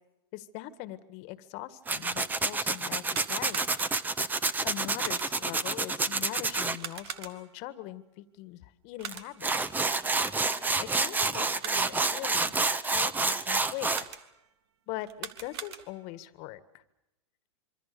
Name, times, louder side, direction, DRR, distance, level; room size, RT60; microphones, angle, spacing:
voice 1, 0.3-3.6 4.6-9.8 10.8-14.1 14.9-16.8, left 15 dB, 45° left, 13 dB, 1.8 m, -41 dB
Tools, 1.9-6.8 9.1-9.2 9.4-14.0, right 3 dB, 10° right, 1.2 m, -28 dB
sound 1, 3.0-4.2 5.0-5.6 6.8-7.7 9.0-9.5 11.4-12.1 13.9-14.5 15.0-16.2, right 9 dB, 60° right, 2.4 m, -42 dB
26.5 x 24.5 x 6.9 m, 0.90 s
hypercardioid pair, 120°, 15 cm